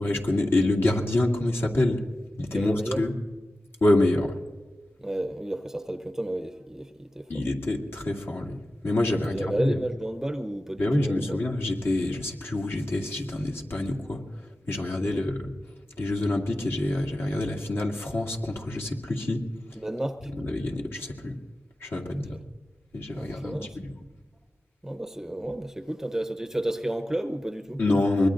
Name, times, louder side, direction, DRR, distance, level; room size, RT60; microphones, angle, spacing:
voice 1, 0.0-2.0 2.4-3.1 3.8-4.4 7.3-9.8 10.8-14.2 14.7-15.5 16.0-19.4 20.3-21.4 21.8-22.4 22.9-23.9 27.8-28.3, left 1 dB, 60° left, 0 dB, 2.3 m, -26 dB
voice 2, 2.5-3.0 5.0-7.3 9.3-11.4 15.0-15.3 19.8-20.3 22.0-22.4 23.1-23.8 24.8-27.8, right 1 dB, 10° right, 7 dB, 0.7 m, -32 dB
24.0 x 21.0 x 2.6 m, 1.3 s
wide cardioid pair, 125°, 5 cm